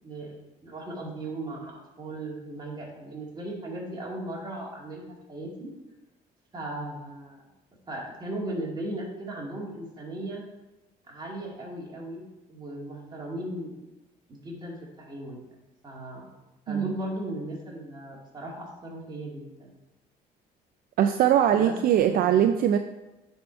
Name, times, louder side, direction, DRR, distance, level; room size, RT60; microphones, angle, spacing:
voice 1, 0.0-5.7 6.5-7.4 7.9-10.4 11.1-13.8 14.3-15.4 15.8-16.3 16.7-19.7 21.5-21.7 22.0-22.5, right 1 dB, 25° right, -3 dB, 2.4 m, -37 dB
voice 2, 21.0-22.8, right 10 dB, 60° right, 8 dB, 0.4 m, -21 dB
9.6 x 4.4 x 4.5 m, 1.0 s
cardioid pair, 110°, 17 cm